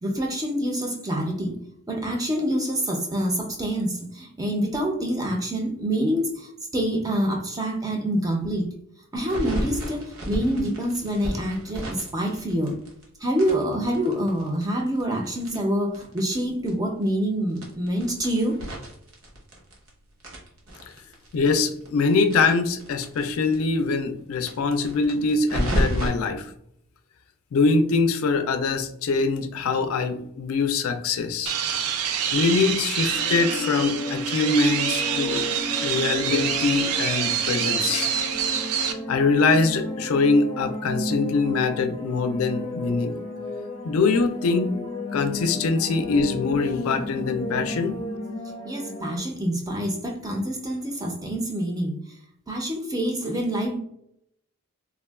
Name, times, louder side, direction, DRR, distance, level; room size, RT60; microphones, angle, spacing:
voice 1, 0.0-1.5 1.9-8.7 9.1-12.7 13.2-18.6 48.6-52.0 52.5-53.8, equal, 15° right, 2 dB, 0.4 m, -26 dB
sound 1, 9.2-13.0 13.3-16.4 16.7-16.8 17.0-17.1 17.5-19.9 20.2-23.2 23.5-23.6 23.9-24.0 24.4-26.1, equal, 60° right, 0.9 m, -31 dB
voice 2, 21.3-26.5 27.5-31.5 32.3-35.5 35.8-38.1 39.1-43.2 43.8-44.8 45.1-48.0, left 4 dB, 70° left, 8 dB, 0.3 m, -23 dB
sound 2, 31.5-38.9, right 8 dB, 85° right, 0.4 m, -26 dB
sound 3, 33.1-49.2, left 1 dB, 30° left, 0.6 m, -33 dB
3.4 x 2.2 x 2.3 m, 0.72 s
head